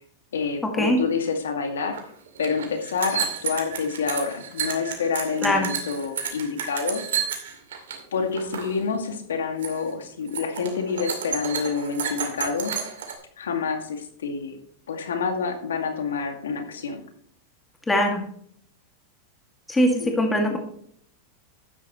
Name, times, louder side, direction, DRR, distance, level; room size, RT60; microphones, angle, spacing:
voice 1, 0.3-2.0 2.4-7.0 8.1-12.7 13.4-14.6 14.9-17.0 20.0-20.1, left 5 dB, 80° left, 5 dB, 2.1 m, -28 dB
sound 1, 1.9-2.0 2.3-8.0 8.3-8.7 9.0-9.3 9.6-9.9 10.3-13.1, right 8 dB, 75° right, 2.4 m, -31 dB
voice 2, 17.9-18.2 19.7-20.6, equal, 10° left, 2 dB, 2.2 m, -21 dB
12.0 x 9.7 x 3.1 m, 0.63 s
hypercardioid pair, 100°, 0 cm